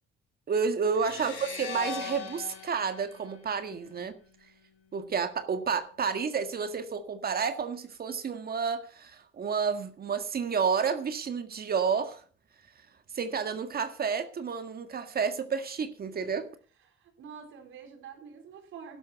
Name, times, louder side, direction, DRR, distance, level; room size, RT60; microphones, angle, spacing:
voice 1, 0.5-4.2 4.9-12.2 13.1-16.5, right 6 dB, 50° right, 9 dB, 1.8 m, -30 dB
sound 1, 0.9-4.2, left 7 dB, 85° left, 4.2 m, -41 dB
voice 2, 16.9-19.0, right 6 dB, 80° right, 4 dB, 4.4 m, -47 dB
12.0 x 11.5 x 5.8 m, 0.41 s
cardioid pair, 90°, 20 cm